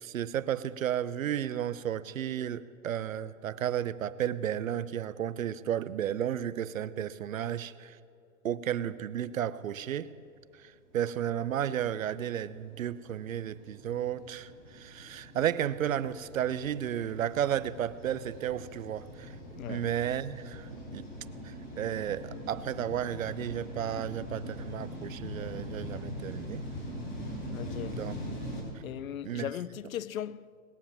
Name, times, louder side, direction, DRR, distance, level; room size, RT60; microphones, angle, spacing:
voice 1, 0.0-8.0 8.4-10.1 10.5-19.4 19.7-21.1 21.4-26.6 27.9-28.4 29.2-29.5, right 10 dB, 70° right, 0.7 m, -33 dB
sound 1, 10.9-28.6, equal, 35° left, 4.7 m, -42 dB
voice 2, 19.6-19.9 27.5-28.0 28.8-30.5, left 11 dB, 75° left, 0.5 m, -38 dB
20.0 x 7.3 x 7.3 m
hypercardioid pair, 160°, 42 cm